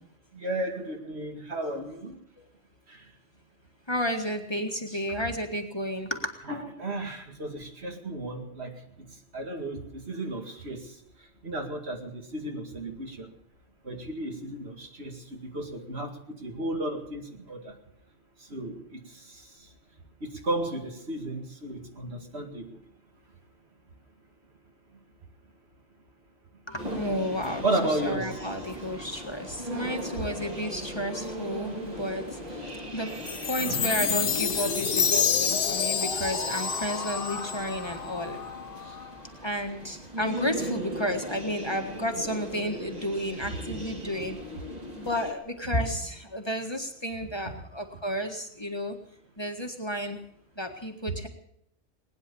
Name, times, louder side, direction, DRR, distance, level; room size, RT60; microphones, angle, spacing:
voice 1, 0.3-2.2 6.5-8.8 9.3-10.8 11.4-13.3 13.9-17.7 18.5-19.0 20.2-22.7 27.6-28.4 35.8-35.9, right 1 dB, 70° right, 3 dB, 2.4 m, -33 dB
voice 2, 3.9-6.3 26.7-27.6 28.0-38.5 38.8-39.0 39.4-44.4 44.9-49.0 49.4-50.2 50.6-51.3, equal, 25° left, 4 dB, 1.7 m, -32 dB
sound 1, 26.8-45.3, equal, 35° right, 2.3 m, -39 dB
Chime, 33.3-37.7, left 7 dB, 75° left, 1.2 m, -28 dB
sound 2, 33.7-39.6, left 4 dB, 55° left, 1.4 m, -36 dB
20.0 x 9.9 x 7.0 m, 0.72 s
omnidirectional pair, 1.1 m